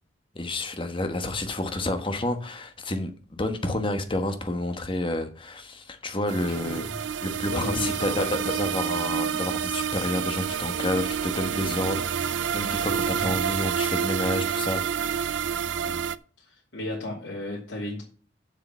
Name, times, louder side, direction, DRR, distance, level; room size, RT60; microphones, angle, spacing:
voice 1, 0.3-15.2, left 1 dB, 30° left, 1.2 m, -30 dB
sound 1, 6.3-16.2, right 8 dB, 80° right, 0.5 m, -28 dB
voice 2, 6.5-7.0 7.5-8.6 13.2-13.5 15.8-16.0 16.4-18.0, left 2 dB, 80° left, 2.8 m, -35 dB
7.5 x 6.9 x 6.9 m
head